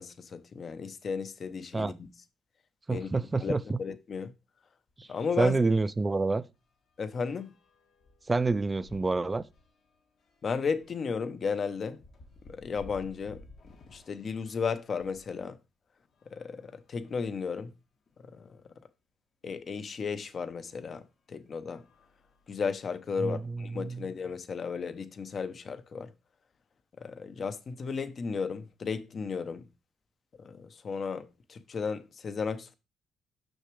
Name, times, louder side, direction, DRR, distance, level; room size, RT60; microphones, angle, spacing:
voice 1, 0.0-1.9 2.9-3.1 3.4-3.5 3.8-4.3 5.1-5.5 7.0-7.5 10.4-12.0 12.5-13.4 13.9-15.6 16.3-17.7 18.3-18.6 19.4-21.0 21.3-21.8 22.5-26.1 27.0-29.6 30.4-32.7, left 5 dB, 50° left, 0.7 m, -34 dB
voice 2, 2.9-3.8 5.0-5.1 5.4-6.4 8.3-9.4 23.2-24.1, right 3 dB, 20° right, 0.4 m, -28 dB
sound 1, 4.9-5.1 5.4-5.5 5.9-15.4 16.1-17.4 18.1-18.2 18.4-18.5 20.2-20.4 21.0-21.2 21.6-22.9, left 2 dB, 70° left, 1.7 m, -56 dB
6.3 x 5.8 x 3.2 m
cardioid pair, 90°, 0 cm